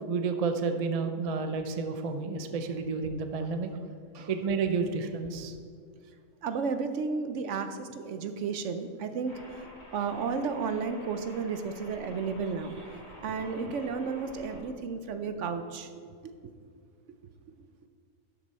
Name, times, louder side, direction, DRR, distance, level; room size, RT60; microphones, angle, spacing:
voice 1, 0.0-3.7 4.3-5.6, right 4 dB, 45° right, 7 dB, 0.4 m, -30 dB
voice 2, 6.4-9.3 9.9-12.9 13.2-15.9, right 5 dB, 65° right, 9 dB, 0.9 m, -33 dB
sound 1, 9.3-14.6, left 1 dB, 45° left, 2.7 m, -49 dB
12.0 x 6.8 x 4.2 m, 2.1 s
omnidirectional pair, 1.5 m